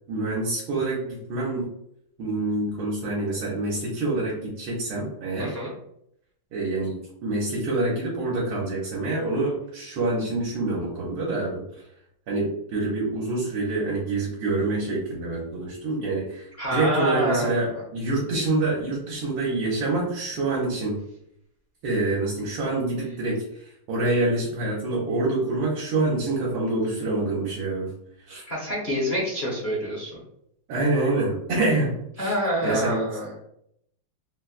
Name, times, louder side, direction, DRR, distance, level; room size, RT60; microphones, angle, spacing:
voice 1, 0.1-1.7 2.2-5.6 6.5-11.6 12.3-21.0 21.8-23.4 23.9-27.9 28.3-28.4 30.7-33.0, right 2 dB, 75° right, -4 dB, 1.5 m, -26 dB
voice 2, 5.4-5.7 16.6-17.8 28.5-30.2 32.2-33.3, equal, 45° left, -6 dB, 0.8 m, -27 dB
4.1 x 2.2 x 2.4 m, 0.73 s
omnidirectional pair, 2.3 m